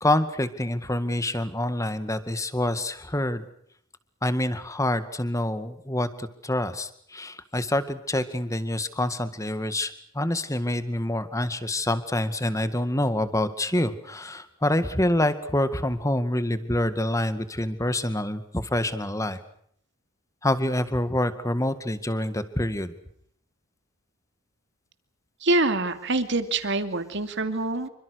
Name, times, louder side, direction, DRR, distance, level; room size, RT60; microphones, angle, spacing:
voice 1, 0.0-3.4 4.2-19.4 20.4-22.9, left 1 dB, 15° left, 12 dB, 2.0 m, -26 dB
voice 2, 25.4-27.9, right 2 dB, 60° right, 9 dB, 2.7 m, -25 dB
27.5 x 25.0 x 6.5 m, 0.67 s
head